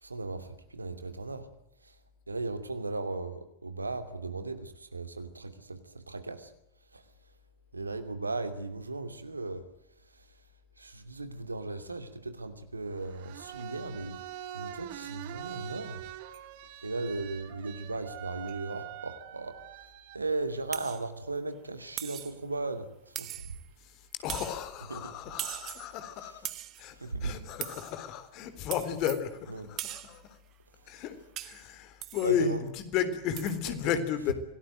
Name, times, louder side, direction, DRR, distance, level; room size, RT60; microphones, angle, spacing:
voice 1, 0.0-1.5 1.8-1.9 2.3-6.5 6.9-7.0 7.7-9.6 10.8-14.2 14.5-16.0 16.8-19.6 20.1-23.3 24.9-25.1 26.3-26.4 27.0-27.3 29.5-29.7 32.2-32.6, right 3 dB, 80° right, 8 dB, 2.8 m, -36 dB
sound 1, 12.9-20.2, right 12 dB, 50° right, 2.6 m, -44 dB
sound 2, 20.7-21.0 22.0-22.4 23.2-23.7 24.3-24.6 25.4-25.9 26.4-26.8 27.6-27.9 28.7-29.3 29.8-30.2 31.4-31.7 32.0-32.3 33.4-33.6, right 14 dB, 35° right, 1.4 m, -39 dB
voice 2, 24.2-26.5 26.8-30.2 30.9-34.3, left 9 dB, 40° left, 10 dB, 3.8 m, -33 dB
26.5 x 18.5 x 9.2 m, 0.79 s
figure-of-eight pair, 90°, 0 cm